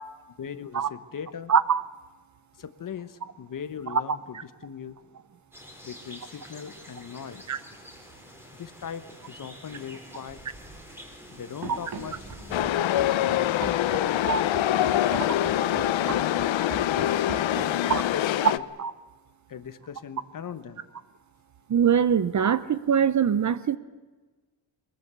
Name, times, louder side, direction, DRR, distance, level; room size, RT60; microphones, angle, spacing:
voice 1, 0.4-1.5 2.6-5.0 5.8-7.4 8.5-10.4 11.3-12.3 13.2-14.2 14.6-16.2 17.2-18.6 19.5-20.8, left 7 dB, 45° left, 13 dB, 1.2 m, -39 dB
voice 2, 1.5-1.8 3.9-4.0 7.5-7.6 14.3-14.4 17.9-18.0 18.4-18.5 18.8-18.9 21.7-23.8, right 7 dB, 40° right, 16 dB, 0.7 m, -22 dB
sound 1, 5.5-12.6, equal, 5° right, 4.0 m, -47 dB
Run, 11.6-18.2, right 4 dB, 55° right, 3.6 m, -40 dB
Chatter / Subway metro underground, 12.5-18.6, left 12 dB, 75° left, 0.9 m, -25 dB
23.0 x 21.0 x 8.2 m, 1.3 s
wide cardioid pair, 180°, 47 cm